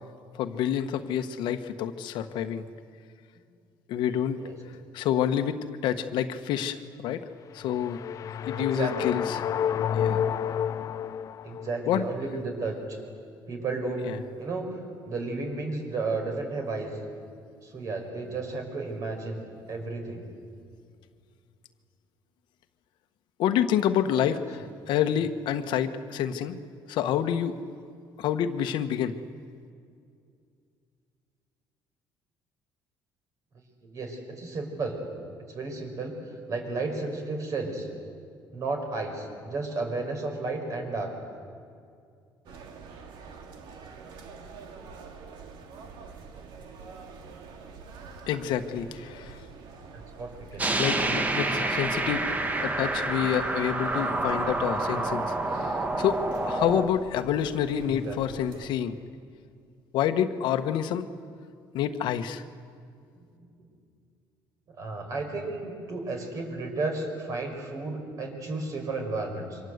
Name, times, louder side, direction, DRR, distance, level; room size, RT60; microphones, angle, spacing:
voice 1, 0.4-2.7 3.9-4.4 4.9-7.2 7.5-8.0 8.5-9.4 9.9-10.2 11.9-12.0 14.0-14.2 23.4-26.6 26.9-27.6 28.2-29.2 48.3-49.4 50.8-52.3 52.6-59.0 59.9-61.1 61.7-62.4, left 9 dB, 70° left, 8 dB, 1.3 m, -28 dB
sound 1, 7.5-11.8, left 9 dB, 45° left, 0.6 m, -30 dB
voice 2, 8.6-9.2 11.4-13.0 13.5-14.1 14.4-14.8 15.1-17.0 17.6-19.4 19.7-20.2 24.3-24.4 33.8-35.0 35.5-36.2 36.5-37.9 38.5-41.1 49.9-50.7 57.9-58.4 63.6-63.7 64.7-69.6, right 3 dB, 40° right, 3 dB, 5.5 m, -33 dB
sound 2, 42.4-58.7, right 5 dB, 70° right, 2.6 m, -46 dB
sound 3, 50.6-56.9, right 2 dB, 20° right, 1.5 m, -28 dB
27.5 x 25.0 x 8.1 m, 2.4 s
cardioid pair, 140°, 8 cm